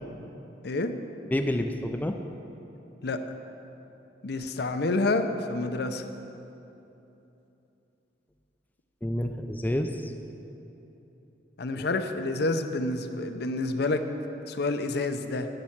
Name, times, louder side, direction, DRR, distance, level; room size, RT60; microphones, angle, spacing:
voice 1, 1.3-2.2 9.0-10.1 11.7-11.8, left 1 dB, 10° left, 5 dB, 0.3 m, -29 dB
voice 2, 4.2-6.0 11.6-14.0 14.5-15.5, left 2 dB, 60° left, 8 dB, 0.6 m, -28 dB
10.5 x 5.6 x 7.3 m, 3.0 s
head